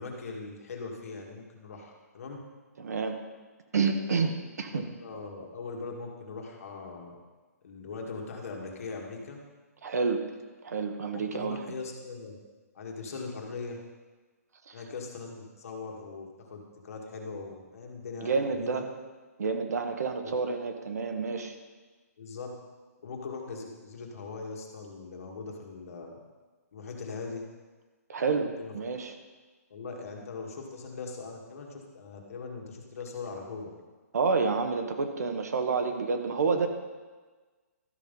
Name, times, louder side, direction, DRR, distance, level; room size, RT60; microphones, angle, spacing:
voice 1, 0.0-2.4 4.7-7.1 7.6-9.4 11.1-12.4 12.7-13.8 14.7-18.8 20.2-20.3 22.2-22.5 23.0-26.2 26.7-27.4 28.6-28.7 29.7-33.7, left 4 dB, 60° left, 0 dB, 2.0 m, -40 dB
voice 2, 2.8-3.2 3.7-4.8 9.8-10.2 10.6-11.6 14.7-14.8 18.2-18.8 19.4-21.5 28.1-29.1 34.1-36.7, right 4 dB, 70° right, 5 dB, 1.3 m, -29 dB
12.5 x 5.5 x 5.4 m, 1.3 s
hypercardioid pair, 160°, 9 cm